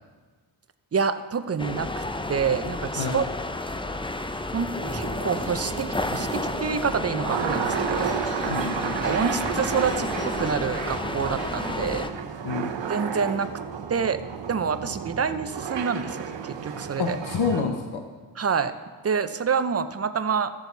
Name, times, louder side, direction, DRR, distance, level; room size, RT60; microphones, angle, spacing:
voice 1, 0.9-2.0 2.3-3.2 4.5-8.2 9.0-12.1 12.9-13.5 13.9-14.2 14.5-17.2 18.4-18.7 19.0-20.5, right 6 dB, 30° right, 11 dB, 0.7 m, -27 dB
sound 1, 1.6-12.1, left 2 dB, 10° left, 0.6 m, -31 dB
sound 2, 4.8-17.6, right 7 dB, 60° right, 0.9 m, -32 dB
voice 2, 8.5-9.2 12.4-12.7 17.0-18.0, left 5 dB, 70° left, 4 dB, 1.0 m, -28 dB
14.0 x 6.9 x 4.1 m, 1.4 s
cardioid pair, 55°, 49 cm